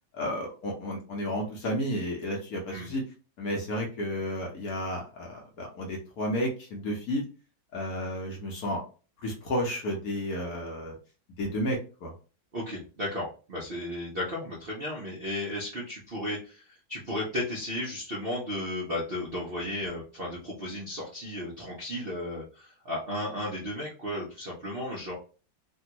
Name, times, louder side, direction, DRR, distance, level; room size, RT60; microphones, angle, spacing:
voice 1, 0.1-3.0 3.4-7.2 7.7-8.8 9.2-11.0 11.4-12.1, equal, 60° left, 0 dB, 1.0 m, -32 dB
voice 2, 12.5-25.1, left 1 dB, 55° right, -4 dB, 0.6 m, -34 dB
3.4 x 2.3 x 2.9 m, 0.35 s
omnidirectional pair, 2.1 m